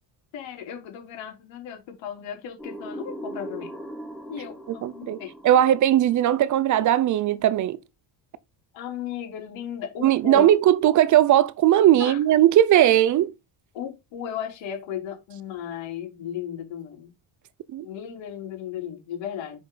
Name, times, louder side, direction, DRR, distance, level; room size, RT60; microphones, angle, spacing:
voice 1, 0.3-3.8 4.3-5.3 8.7-10.5 12.0-12.2 13.7-17.1 17.8-19.6, left 9 dB, 80° left, 3.9 m, -35 dB
sound 1, 2.6-7.3, equal, ahead, 1.2 m, -40 dB
voice 2, 4.8-5.2 5.4-7.8 10.0-13.3 17.7-17.9, right 12 dB, 40° right, 0.6 m, -18 dB
7.3 x 5.7 x 3.9 m
cardioid pair, 175°, 45 cm